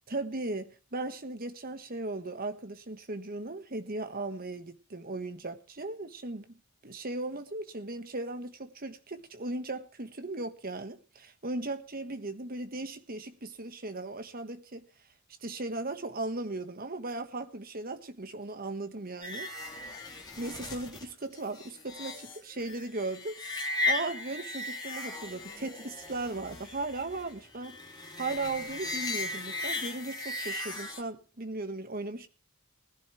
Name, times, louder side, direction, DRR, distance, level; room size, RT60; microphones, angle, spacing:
voice 1, 0.1-14.9 15.4-19.5 20.4-27.8 28.2-32.3, right 2 dB, 40° right, 1.4 m, -37 dB
sound 1, 19.2-31.0, left 2 dB, 20° left, 3.7 m, -37 dB
20.0 x 11.0 x 3.2 m
head